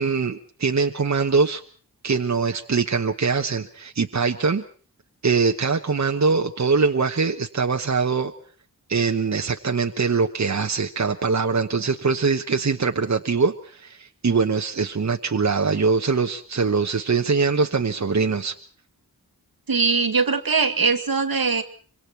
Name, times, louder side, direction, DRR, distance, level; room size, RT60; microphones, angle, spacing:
voice 1, 0.0-1.6 2.0-4.6 5.2-8.3 8.9-18.5, right 4 dB, 50° right, 4 dB, 1.1 m, -22 dB
voice 2, 19.7-21.6, right 4 dB, 75° right, 9 dB, 2.1 m, -21 dB
25.5 x 24.5 x 4.6 m, 0.42 s
wide cardioid pair, 90°, 36 cm